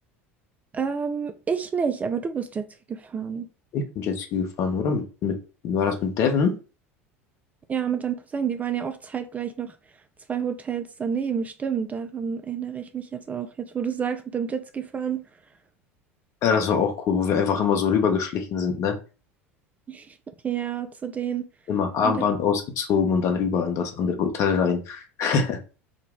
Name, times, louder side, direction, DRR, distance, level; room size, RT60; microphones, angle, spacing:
voice 1, 0.7-3.5 7.7-9.7 10.3-15.2 19.9-20.2 20.4-21.4 22.0-22.2, right 7 dB, 20° right, 0.4 m, -29 dB
voice 2, 3.7-5.4 5.6-6.5 16.4-19.0 21.7-25.6, left 6 dB, 40° left, 0.9 m, -24 dB
3.9 x 2.2 x 3.6 m
figure-of-eight pair, 75°, 7 cm